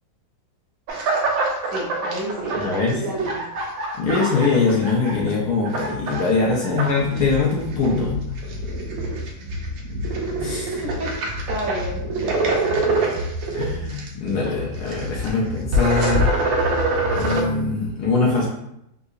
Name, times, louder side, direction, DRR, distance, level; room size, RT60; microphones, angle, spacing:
sound 1, 0.9-5.3 5.6-6.3 6.6-17.4, right 1 dB, 90° right, 1.4 m, -25 dB
voice 1, 1.7-3.4 10.8-11.1 11.5-13.2, right 1 dB, 60° right, -4 dB, 1.0 m, -31 dB
voice 2, 2.5-3.0 4.0-8.2 10.4-10.8 13.5-16.3 17.1-18.5, left 4 dB, 70° left, -2 dB, 1.0 m, -22 dB
3.7 x 2.7 x 2.4 m, 0.81 s
omnidirectional pair, 2.1 m